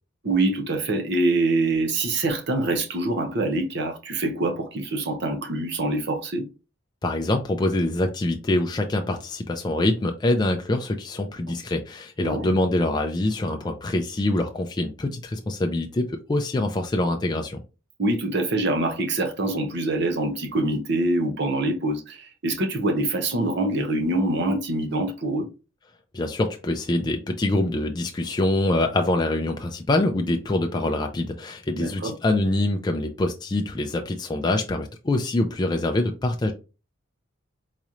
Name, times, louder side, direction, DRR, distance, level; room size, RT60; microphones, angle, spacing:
voice 1, 0.2-6.5 12.2-12.5 18.0-25.5 31.7-32.2, right 2 dB, 55° right, 0.7 m, -25 dB
voice 2, 7.0-17.6 26.1-36.5, left 2 dB, 20° left, 0.3 m, -25 dB
4.0 x 3.0 x 2.4 m
head